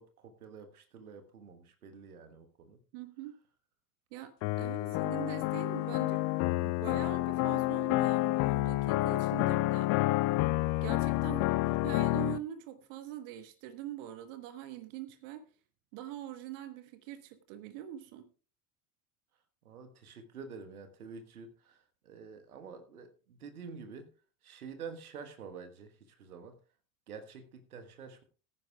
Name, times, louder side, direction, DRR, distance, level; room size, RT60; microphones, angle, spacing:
voice 1, 0.0-2.8 4.5-5.1 5.5-5.6 11.3-11.6 19.6-24.1 24.4-26.6 27.1-28.2, right 5 dB, 75° right, 8 dB, 1.4 m, -48 dB
voice 2, 2.9-3.4 4.1-6.2 6.6-9.9 10.8-15.5 15.9-18.3, right 12 dB, 55° right, 10 dB, 1.2 m, -43 dB
sound 1, 4.4-12.4, left 19 dB, 40° left, 0.5 m, -29 dB
19.5 x 10.0 x 2.3 m, 0.36 s
figure-of-eight pair, 70°, 44 cm